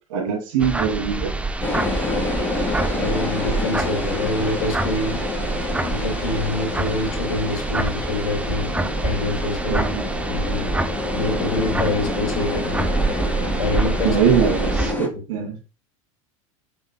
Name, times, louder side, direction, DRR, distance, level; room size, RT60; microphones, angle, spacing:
voice 1, 0.1-1.3 9.7-10.0 14.0-15.6, right 7 dB, 70° right, 2.7 m, -22 dB
sound 1, 0.6-14.9, right 3 dB, 5° right, 0.8 m, -26 dB
sound 2, 1.6-15.1, left 2 dB, 10° left, 3.4 m, -28 dB
voice 2, 2.9-5.2 5.8-9.9 10.3-10.7 11.1-12.9 13.6-14.2 15.1-15.5, left 2 dB, 90° left, 2.5 m, -26 dB
8.4 x 6.4 x 2.2 m
hypercardioid pair, 95°, 18 cm